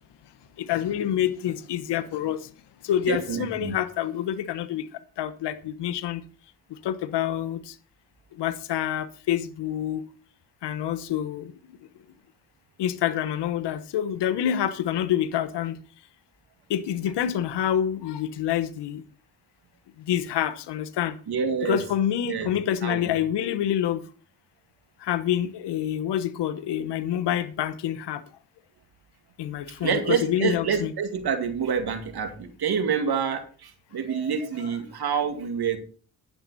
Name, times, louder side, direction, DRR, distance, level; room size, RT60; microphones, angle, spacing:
voice 1, 0.6-2.4 2.8-4.8 5.2-6.2 6.8-7.6 8.4-10.0 10.6-11.5 12.8-15.8 16.7-19.0 20.1-21.1 21.6-24.0 25.0-28.2 29.4-30.9 34.1-34.3, left 10 dB, 75° left, 1.2 m, -27 dB
voice 2, 3.1-3.7 21.3-21.8 22.3-22.5 22.8-23.2 29.8-35.8, right 6 dB, 65° right, 2.4 m, -27 dB
11.0 x 10.0 x 4.2 m
supercardioid pair, 50°, 42 cm